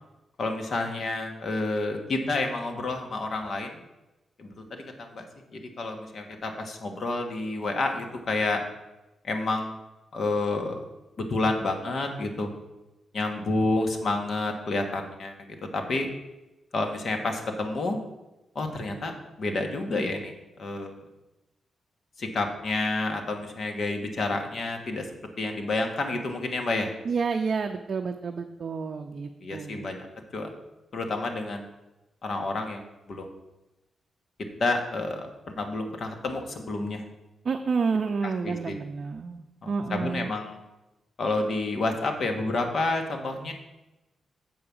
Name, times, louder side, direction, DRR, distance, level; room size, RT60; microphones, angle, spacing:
voice 1, 0.4-3.8 4.4-8.6 9.2-9.7 10.1-10.8 11.2-12.5 13.1-16.1 16.7-18.0 18.5-21.0 22.2-25.1 25.4-26.9 29.4-30.1 30.3-30.5 30.9-31.6 32.2-32.8 33.1-33.3 34.6-35.3 35.6-37.0 38.2-38.8 39.6-40.6 41.2-43.5, left 2 dB, 50° left, 4 dB, 1.3 m, -29 dB
voice 2, 27.1-30.0 37.4-40.3, right 5 dB, 45° right, 4 dB, 0.5 m, -30 dB
7.7 x 4.8 x 7.0 m, 0.99 s
wide cardioid pair, 135°, 0 cm